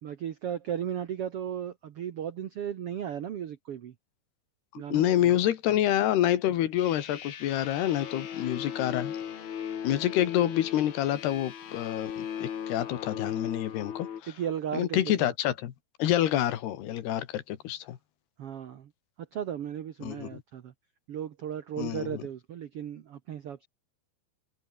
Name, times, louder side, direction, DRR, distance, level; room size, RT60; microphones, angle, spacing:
voice 1, 0.0-3.9 4.8-5.4 14.3-15.1 18.4-18.9 19.2-20.7 21.1-23.7, right 9 dB, 90° right, 1.3 m, -35 dB
voice 2, 4.9-9.2 9.8-14.3 14.7-15.7 16.0-18.0 20.0-20.3 21.8-22.2, left 12 dB, 90° left, 3.8 m, -27 dB
sound 1, 6.8-14.2, left 8 dB, 65° left, 1.2 m, -38 dB
omnidirectional pair, 4.5 m